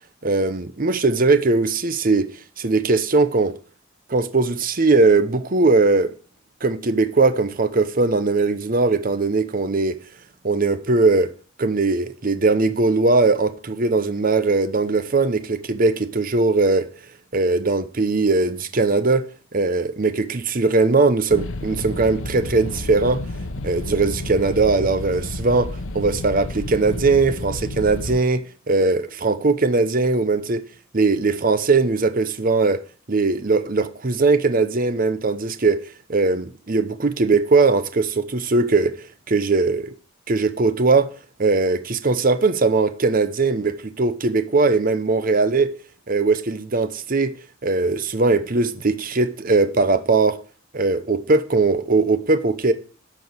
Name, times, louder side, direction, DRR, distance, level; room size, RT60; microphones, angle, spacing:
voice 1, 0.2-2.3 2.6-3.5 4.1-6.1 6.6-10.0 10.4-11.3 11.6-16.9 17.3-19.2 19.5-23.2 23.6-25.7 25.9-30.6 30.9-32.8 33.1-35.8 36.1-38.9 39.3-39.9 40.3-41.1 41.4-45.7 46.1-47.3 47.6-50.4 50.7-52.7, right 3 dB, 45° right, 0.8 m, -20 dB
sound 1, 21.3-28.2, left 2 dB, 85° left, 1.1 m, -31 dB
12.5 x 4.7 x 7.9 m
head